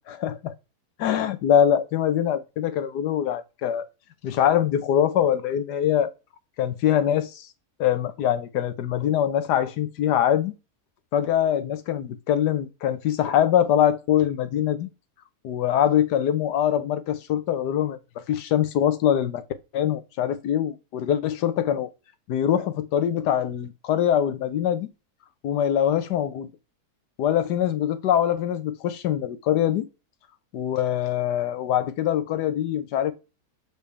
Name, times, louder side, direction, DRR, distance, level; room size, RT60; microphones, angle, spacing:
voice 1, 0.1-0.5 1.0-3.8 4.2-6.1 6.6-7.5 7.8-10.5 11.1-14.9 15.4-19.4 19.7-21.9 22.3-24.9 25.4-26.5 27.2-29.9 30.5-33.1, left 10 dB, 85° left, 1.4 m, -23 dB
6.8 x 4.8 x 3.3 m
omnidirectional pair, 1.7 m